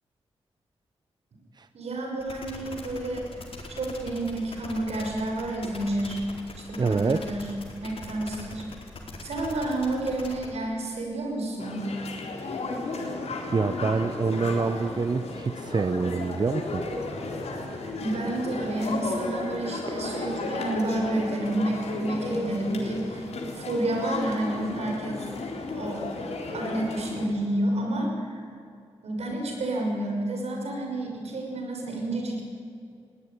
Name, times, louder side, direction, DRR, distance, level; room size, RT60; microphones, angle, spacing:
voice 1, 1.7-6.2 6.7-7.5 7.8-8.6 9.2-11.9 18.0-25.2 25.7-26.2 26.5-28.4 29.0-32.4, right 1 dB, 80° right, 1 dB, 6.2 m, -30 dB
sound 1, 2.2-10.5, left 2 dB, 60° left, 4.5 m, -41 dB
voice 2, 6.8-7.2 13.5-16.9, right 4 dB, 40° right, 11 dB, 0.8 m, -26 dB
sound 2, 11.6-27.3, left 2 dB, 85° left, 3.9 m, -34 dB
21.0 x 17.0 x 9.8 m, 2.6 s
cardioid pair, 75°, 11 cm